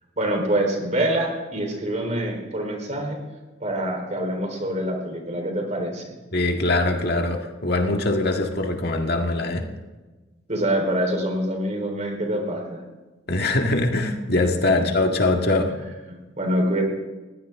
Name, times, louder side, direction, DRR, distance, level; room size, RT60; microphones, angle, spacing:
voice 1, 0.2-3.2 3.6-6.1 10.5-12.8 16.1-16.8, right 1 dB, 40° right, 2 dB, 4.0 m, -25 dB
voice 2, 6.3-9.7 13.3-15.7, left 2 dB, 55° left, 3 dB, 1.9 m, -22 dB
21.0 x 16.0 x 3.7 m, 1.2 s
head